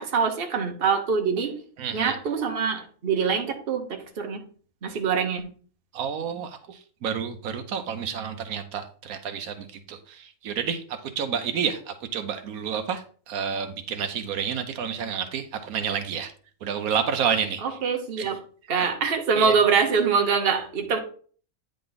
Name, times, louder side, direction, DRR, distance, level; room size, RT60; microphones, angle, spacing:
voice 1, 0.0-1.6 1.9-4.4 4.8-5.5 17.6-18.4 18.7-21.0, right 5 dB, 45° right, 3 dB, 1.2 m, -24 dB
voice 2, 1.8-2.2 5.9-16.3 16.6-17.8 18.2-18.4 19.3-19.6, right 7 dB, 85° right, 7 dB, 1.2 m, -30 dB
9.4 x 3.8 x 3.9 m, 0.43 s
omnidirectional pair, 1.5 m